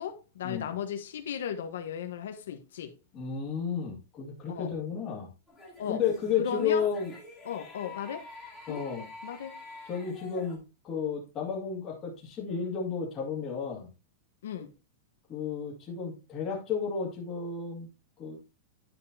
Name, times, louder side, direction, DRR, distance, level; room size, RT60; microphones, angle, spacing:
voice 1, 0.0-2.9 4.5-4.7 5.8-6.0 6.4-6.9 7.4-8.2 8.7-8.8 9.2-9.6 14.4-14.7, left 8 dB, 85° left, 1.2 m, -35 dB
voice 2, 3.1-5.3 5.9-7.1 8.7-9.1 9.9-10.6 10.8-13.9 15.3-17.9 18.2-18.4, left 6 dB, 20° left, 2.0 m, -32 dB
sound 1, 5.5-10.6, left 2 dB, ahead, 2.0 m, -47 dB
10.5 x 5.6 x 2.8 m
supercardioid pair, 180°, 0 cm